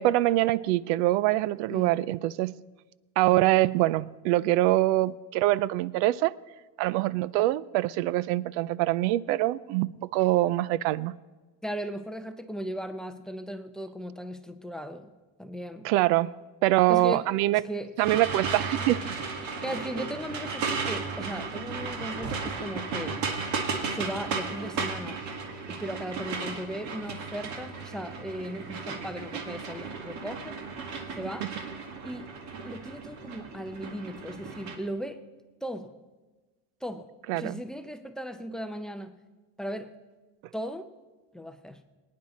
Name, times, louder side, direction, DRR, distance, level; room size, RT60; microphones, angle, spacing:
voice 1, 0.0-2.6 3.2-6.3 6.8-11.1 15.8-16.3 16.6-17.6 18.0-19.0 37.3-37.6, right 16 dB, 70° right, 0.5 m, -24 dB
voice 2, 11.6-15.1 15.4-15.9 16.9-17.2 17.5-18.0 19.4-23.2 23.9-25.2 25.7-30.6 31.2-31.5 32.0-32.3 32.6-35.2 35.6-36.0 36.8-37.1 37.3-39.2 39.6-40.0 40.5-40.9 41.3-41.8, equal, ahead, 0.5 m, -37 dB
sound 1, 18.0-34.8, right 4 dB, 55° right, 1.8 m, -35 dB
23.0 x 9.6 x 4.1 m
cardioid pair, 145°, 36 cm